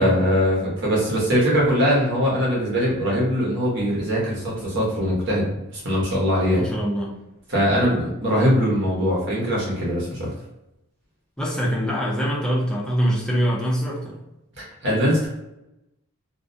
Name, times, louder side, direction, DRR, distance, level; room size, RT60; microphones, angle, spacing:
voice 1, 0.0-5.4 5.7-6.6 7.5-10.3 14.6-15.3, equal, 60° right, -5 dB, 0.9 m, -21 dB
voice 2, 6.5-7.1 11.4-14.2, equal, 5° left, -5 dB, 0.4 m, -24 dB
2.4 x 2.0 x 2.5 m, 0.90 s
head